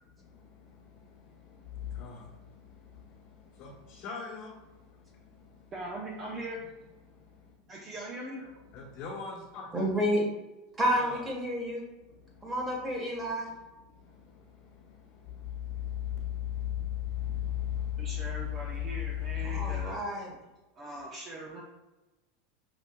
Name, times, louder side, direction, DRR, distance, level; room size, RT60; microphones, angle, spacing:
voice 1, 0.2-5.7 7.0-7.7 8.7-9.9 10.9-11.2 12.1-12.9 13.1-13.3 13.9-19.9, left 10 dB, 45° left, -9 dB, 1.3 m, -38 dB
voice 2, 5.7-6.6 7.7-8.5 18.0-20.0 20.8-21.6, right 1 dB, 30° right, -3 dB, 0.7 m, -41 dB
voice 3, 9.7-10.3 10.8-11.8 12.4-13.5 19.4-20.3, equal, 15° right, -1 dB, 1.3 m, -30 dB
5.8 x 2.7 x 2.2 m, 1.0 s
supercardioid pair, 125°, 0 cm